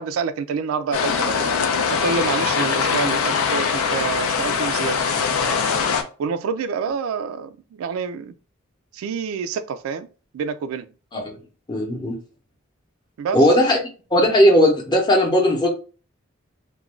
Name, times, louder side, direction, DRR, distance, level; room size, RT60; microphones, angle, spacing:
voice 1, 0.0-1.5 1.9-5.6 6.2-8.3 8.9-10.1 10.3-10.9 13.2-13.5, right 5 dB, 85° right, 0.3 m, -27 dB
sound 1, 0.9-6.0, left 6 dB, 90° left, 0.4 m, -22 dB
voice 2, 11.7-12.2 13.3-13.8 14.1-15.7, equal, 20° left, 0.6 m, -17 dB
2.4 x 2.2 x 3.0 m
head